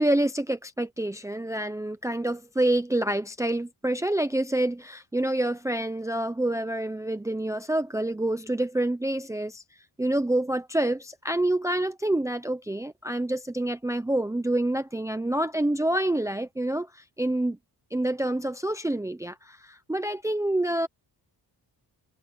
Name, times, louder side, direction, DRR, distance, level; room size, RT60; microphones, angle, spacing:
voice 1, 0.0-9.6 10.0-17.6 17.9-20.9, right 1 dB, 5° right, 0.7 m, -27 dB
wide cardioid pair, 165°, 41 cm